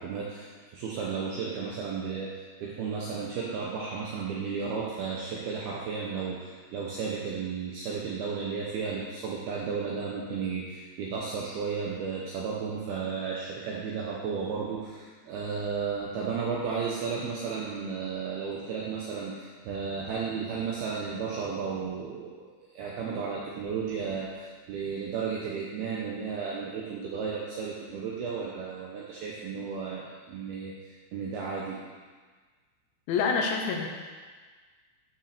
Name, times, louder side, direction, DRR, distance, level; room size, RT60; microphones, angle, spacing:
voice 1, 0.0-31.8, right 5 dB, 80° right, -4 dB, 2.3 m, -34 dB
voice 2, 33.1-33.9, left 5 dB, 75° left, 2 dB, 3.0 m, -26 dB
9.9 x 6.0 x 6.7 m, 1.5 s
omnidirectional pair, 5.7 m